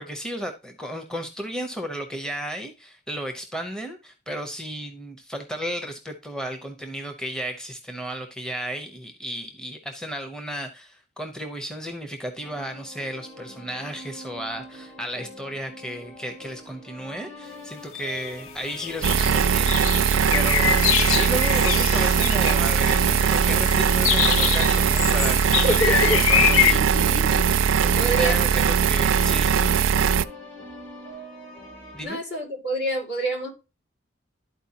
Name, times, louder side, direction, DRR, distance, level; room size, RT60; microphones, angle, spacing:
voice 1, 0.0-19.7 20.3-26.8 27.8-29.7 31.9-32.2, equal, 5° left, 0.7 m, -33 dB
sound 1, 12.4-32.0, equal, 35° left, 2.8 m, -44 dB
sound 2, 17.9-18.3 18.7-26.7, left 10 dB, 75° left, 0.4 m, -25 dB
sound 3, 19.0-30.2, right 7 dB, 75° right, 0.4 m, -20 dB
voice 2, 25.6-26.2 26.5-27.4 28.0-28.4 32.0-33.5, right 1 dB, 60° left, 2.6 m, -27 dB
11.5 x 4.5 x 2.8 m
head